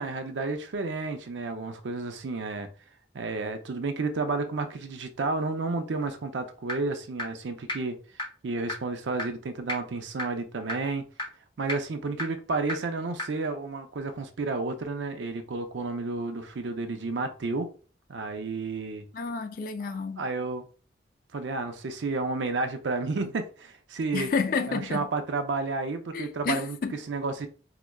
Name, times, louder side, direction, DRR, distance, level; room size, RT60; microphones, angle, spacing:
voice 1, 0.0-2.7 3.1-8.0 8.4-11.1 11.6-17.7 18.1-19.1 19.8-20.6 21.3-24.3 24.7-27.5, right 3 dB, 85° right, 0.5 m, -31 dB
sound 1, 6.7-6.8 7.2-7.3 7.7-7.8 8.2-8.3 8.7-8.8 9.2-9.3 9.7-9.8 10.2-10.3 10.7-10.8 11.2-11.3 11.7-11.8 12.2-12.3 12.7-12.8 13.2-13.3, left 2 dB, 25° left, 0.8 m, -30 dB
voice 2, 19.1-20.2 24.1-25.0 26.1-27.0, left 5 dB, 50° left, 0.3 m, -30 dB
4.7 x 2.1 x 2.2 m
head